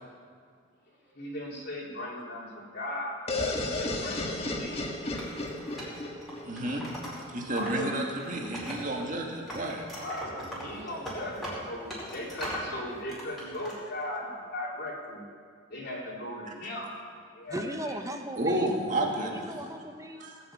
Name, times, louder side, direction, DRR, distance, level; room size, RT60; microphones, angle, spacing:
voice 1, 0.9-3.2 3.6-4.8 7.2-8.5 10.0-15.3 15.7-16.9 17.3-18.0, left 1 dB, 55° left, -3 dB, 3.4 m, -38 dB
sound 1, 3.3-7.0, left 2 dB, 30° left, 1.5 m, -33 dB
Wood, 5.1-7.8 8.1-9.2 9.5-12.7 13.1-13.7, equal, ahead, 5.0 m, -40 dB
voice 2, 6.5-6.9 7.3-9.8 18.4-19.5 20.2-20.4, right 1 dB, 40° right, 0 dB, 2.1 m, -31 dB
voice 3, 17.5-18.8 19.2-20.3, right 1 dB, 15° right, 5 dB, 1.0 m, -37 dB
18.5 x 7.6 x 8.8 m, 2.1 s
head